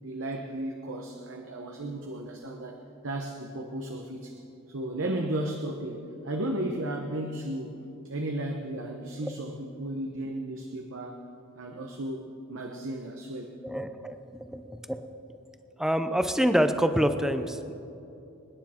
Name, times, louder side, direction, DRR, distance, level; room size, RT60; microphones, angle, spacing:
voice 1, 0.0-4.4 4.7-7.8 8.0-11.3 11.6-13.5, right 1 dB, 65° right, 3 dB, 1.0 m, -34 dB
voice 2, 13.6-15.1 15.8-17.7, equal, ahead, 8 dB, 0.6 m, -27 dB
26.0 x 9.9 x 4.4 m, 2.8 s
head